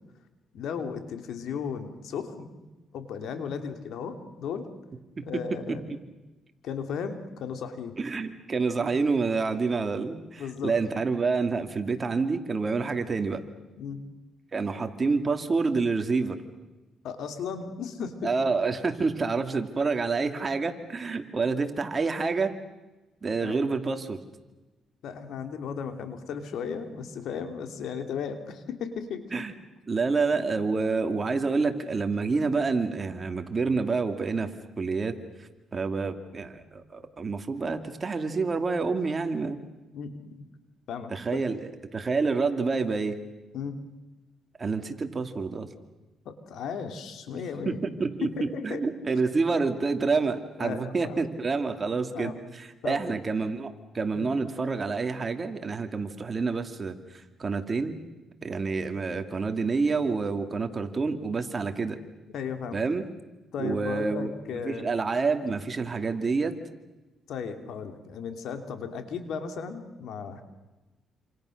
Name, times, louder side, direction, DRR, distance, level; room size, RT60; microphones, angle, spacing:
voice 1, 0.5-2.5 2.9-4.7 5.2-6.0 6.6-8.0 10.4-10.8 13.8-14.0 17.0-18.5 21.4-21.6 23.4-23.6 25.0-29.3 39.9-40.4 40.9-41.4 43.5-43.8 46.2-47.8 48.2-48.9 50.6-51.2 52.1-52.4 52.8-53.1 54.1-54.3 62.3-62.8 63.5-65.0 67.3-70.4, left 6 dB, 75° left, 7 dB, 3.1 m, -35 dB
voice 2, 8.0-13.4 14.5-16.4 18.2-22.5 23.2-24.2 29.3-29.5 29.9-34.5 34.8-35.1 35.7-39.6 41.1-43.2 44.6-45.7 47.7-48.3 48.6-52.3 52.8-57.9 58.4-62.0 62.7-63.0 63.6-64.3 64.6-66.6, right 4 dB, 35° right, 7 dB, 2.5 m, -28 dB
28.0 x 27.0 x 6.6 m, 1.1 s
cardioid pair, 90°, 0 cm